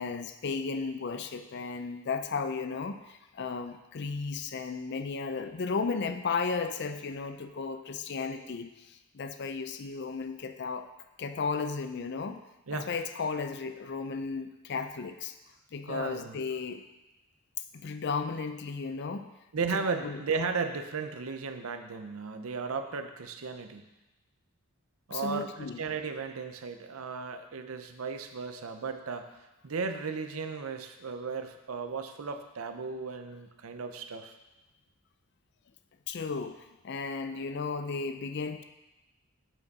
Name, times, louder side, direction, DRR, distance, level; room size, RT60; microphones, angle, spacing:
voice 1, 0.0-10.9 11.2-12.4 12.7-15.4 15.7-16.8 17.7-19.3 19.7-20.2 25.1-25.8 36.1-38.6, left 4 dB, 50° left, 8 dB, 0.4 m, -34 dB
voice 2, 15.9-16.4 19.5-23.9 25.1-25.5 25.8-29.3 29.6-34.3, right 5 dB, 70° right, 8 dB, 0.6 m, -35 dB
7.7 x 5.0 x 4.7 m, 1.0 s
head